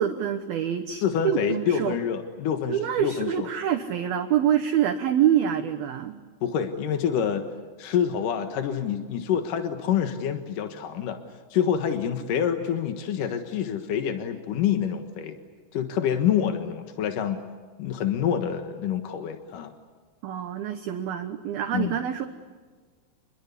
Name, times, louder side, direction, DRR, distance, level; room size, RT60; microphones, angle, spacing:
voice 1, 0.0-2.0 2.7-6.2 20.2-22.3, right 10 dB, 70° right, 7 dB, 2.4 m, -26 dB
voice 2, 1.0-3.5 6.4-7.5 7.8-11.2 11.5-15.4 15.7-17.4 17.8-19.7 21.7-22.0, left 8 dB, 65° left, 6 dB, 2.1 m, -27 dB
29.0 x 22.0 x 8.3 m, 1.5 s
omnidirectional pair, 5.7 m